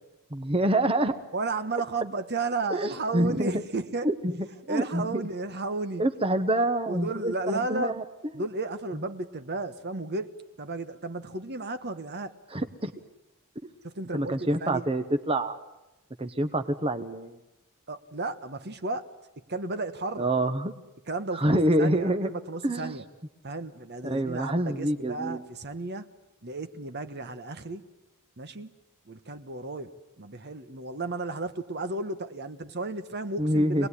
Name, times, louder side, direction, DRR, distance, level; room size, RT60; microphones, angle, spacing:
voice 1, 0.3-1.1 2.7-3.5 4.0-4.1 4.7-5.3 6.0-8.0 12.5-12.9 14.1-15.6 16.2-17.4 20.2-20.7 21.4-22.3 22.6-23.0 24.0-25.4 33.4-33.9, right 1 dB, 25° right, 7 dB, 1.1 m, -26 dB
voice 2, 1.3-4.1 4.7-6.0 6.9-7.9 8.3-10.3 10.6-12.3 13.8-14.9 17.9-19.1 19.5-20.3 21.1-23.0 23.4-26.1 26.4-27.8 28.4-28.7 29.1-33.9, right 3 dB, 50° right, 9 dB, 1.3 m, -33 dB
25.5 x 19.5 x 10.0 m, 0.98 s
head